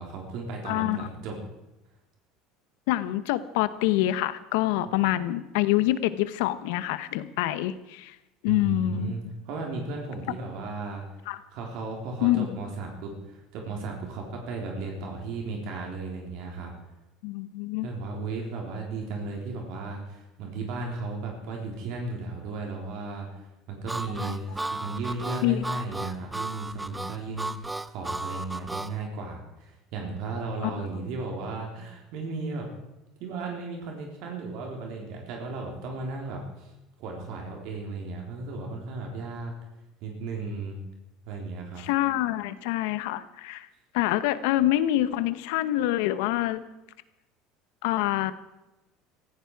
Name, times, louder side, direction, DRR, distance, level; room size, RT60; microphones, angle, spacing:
voice 1, 0.0-1.4 8.5-11.1 11.5-16.7 17.8-32.7 33.2-36.7 37.0-39.5 40.0-40.8 41.3-41.8, right 3 dB, 65° right, 1 dB, 3.8 m, -35 dB
voice 2, 0.6-1.1 2.9-8.1 8.4-9.1 11.3-11.4 12.2-12.5 17.2-17.9 24.3-24.4 25.4-25.7 30.6-30.7 41.8-43.7 43.9-46.6 47.8-48.3, left 15 dB, 80° left, 14 dB, 1.0 m, -26 dB
Harmonica, 23.9-28.9, right 2 dB, 10° right, 0.5 m, -34 dB
17.5 x 15.0 x 4.8 m, 0.97 s
supercardioid pair, 125°, 0 cm